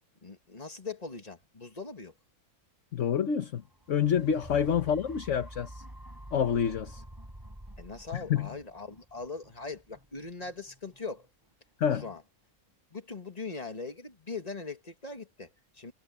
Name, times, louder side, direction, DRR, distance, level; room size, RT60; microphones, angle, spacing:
voice 1, 0.2-2.1 7.8-11.3 11.9-12.2 12.9-15.9, left 4 dB, 25° left, 1.9 m, -41 dB
voice 2, 2.9-3.6 3.9-5.8 6.3-7.0 8.1-8.5 11.8-12.0, left 8 dB, 55° left, 1.3 m, -27 dB
sound 1, 3.6-11.7 12.2-12.3, right 1 dB, 15° right, 4.3 m, -48 dB
omnidirectional pair, 1.5 m